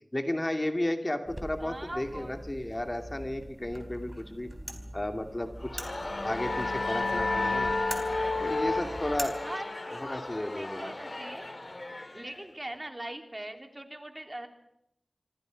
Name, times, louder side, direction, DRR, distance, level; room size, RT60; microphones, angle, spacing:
voice 1, 0.1-4.5 4.9-5.8 6.2-7.7 8.4-9.4 9.9-10.9, left 1 dB, 30° left, 6 dB, 2.5 m, -33 dB
sound 1, 1.3-9.3, equal, 10° right, 4.3 m, -43 dB
voice 2, 1.6-2.4 9.4-11.5 12.1-14.5, right 1 dB, 30° right, 5 dB, 3.2 m, -41 dB
Crowd, 5.6-12.8, left 2 dB, 45° left, 2.9 m, -38 dB
sound 2, 5.8-11.1, left 3 dB, 85° left, 1.5 m, -32 dB
26.5 x 25.5 x 5.2 m, 0.80 s
wide cardioid pair, 55°, 0 cm